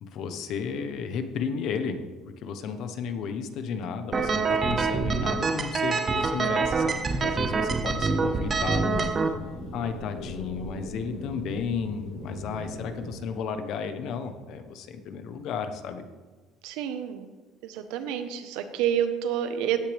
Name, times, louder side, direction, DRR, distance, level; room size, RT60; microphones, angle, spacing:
voice 1, 0.0-9.4 9.7-16.0, left 6 dB, 55° left, 8 dB, 1.1 m, -33 dB
sound 1, 4.1-9.3, right 4 dB, 25° right, 0.8 m, -26 dB
sound 2, 7.8-13.2, left 1 dB, 85° left, 4.4 m, -39 dB
voice 2, 16.6-17.3 17.6-19.8, right 9 dB, 85° right, 8 dB, 1.2 m, -28 dB
17.0 x 9.5 x 3.5 m, 1.3 s
cardioid pair, 150°, 0 cm